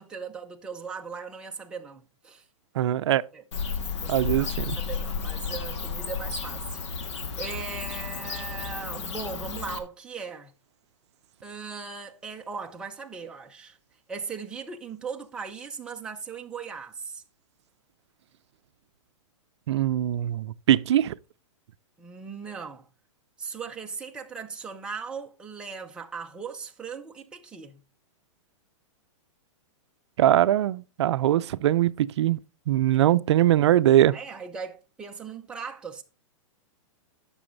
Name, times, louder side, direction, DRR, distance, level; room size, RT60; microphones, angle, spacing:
voice 1, 0.0-2.4 3.3-3.4 4.0-10.5 11.4-13.8 14.1-17.2 22.0-22.9 23.4-27.8 34.1-36.0, right 5 dB, 5° right, 0.7 m, -38 dB
voice 2, 2.8-3.2 4.1-4.8 19.7-21.2 30.2-32.4 32.7-34.1, right 12 dB, 60° right, 0.5 m, -22 dB
Bird / Cricket, 3.5-9.8, left 5 dB, 60° left, 1.6 m, -33 dB
11.0 x 6.2 x 3.9 m
hypercardioid pair, 170°, 17 cm